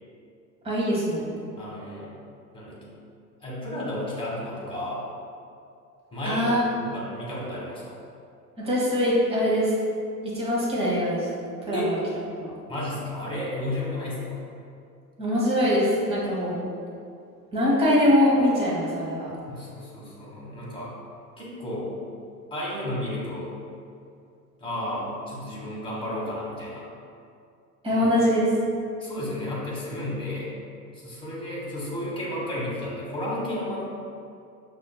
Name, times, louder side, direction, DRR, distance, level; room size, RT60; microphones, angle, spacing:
voice 1, 0.6-1.3 6.2-6.6 8.6-9.7 10.2-11.3 11.7-12.0 12.4-12.5 15.2-16.6 17.5-19.3 27.8-28.4, left 1 dB, 10° right, -7 dB, 1.2 m, -23 dB
voice 2, 1.6-2.1 2.5-2.9 3.4-5.0 6.1-6.5 6.8-8.0 11.7-11.9 12.7-14.4 19.5-20.9 21.4-21.9 22.5-23.6 24.6-26.8 27.9-28.1 29.0-30.5 30.9-33.8, left 1 dB, 10° left, -6 dB, 1.4 m, -32 dB
5.7 x 2.7 x 2.3 m, 2.4 s
hypercardioid pair, 75°, 48 cm